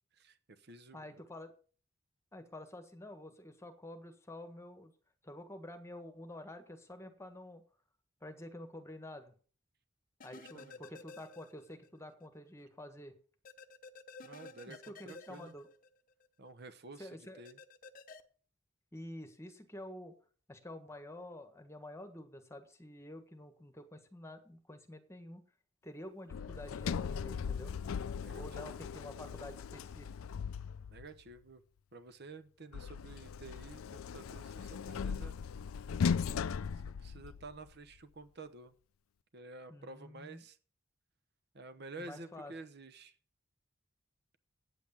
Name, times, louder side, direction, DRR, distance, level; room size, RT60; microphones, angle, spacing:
voice 1, 0.1-1.1 10.3-10.8 14.2-15.5 16.4-17.6 28.2-28.7 30.9-31.6 31.9-35.4 37.0-38.7 39.3-40.6 41.5-43.2, right 3 dB, 50° right, 11 dB, 1.0 m, -51 dB
voice 2, 0.9-1.5 2.3-4.9 5.2-7.6 8.2-9.3 10.2-13.1 14.6-15.7 17.0-17.4 18.9-20.1 20.5-25.4 25.8-27.8 28.4-30.1 39.7-40.4 42.0-42.5, left 1 dB, 15° left, 7 dB, 1.5 m, -49 dB
sound 1, 10.2-11.9 12.2-12.3 13.4-16.3 17.4-18.2, left 4 dB, 40° left, 0.9 m, -52 dB
Sliding door, 26.3-31.1 32.7-37.7, left 6 dB, 85° left, 0.4 m, -38 dB
9.0 x 8.4 x 7.1 m, 0.41 s
head